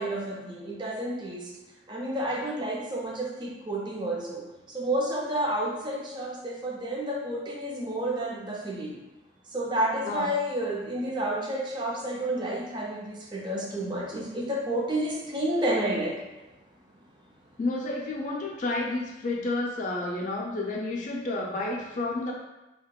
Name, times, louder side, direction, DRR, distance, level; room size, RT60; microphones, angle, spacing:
voice 1, 0.0-1.4 1.9-4.4 4.7-6.3 6.6-8.9 9.5-16.1, right 1 dB, 25° right, -4 dB, 0.4 m, -30 dB
voice 2, 17.6-22.3, left 2 dB, 40° left, -2 dB, 0.4 m, -30 dB
2.8 x 2.1 x 2.2 m, 1.0 s
head